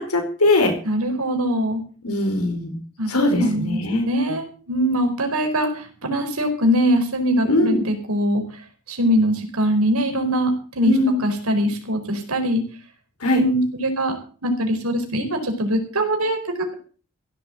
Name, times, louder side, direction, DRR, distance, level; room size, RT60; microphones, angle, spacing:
voice 1, 0.0-0.7 2.0-2.8 3.1-4.1 7.4-7.8 10.8-11.2 13.2-13.4, left 2 dB, 90° left, 4 dB, 4.6 m, -20 dB
voice 2, 0.8-1.8 3.0-8.6 8.9-12.6 13.3-14.2 14.4-16.7, equal, 80° right, 5 dB, 4.4 m, -22 dB
16.0 x 7.8 x 7.8 m, 0.39 s
head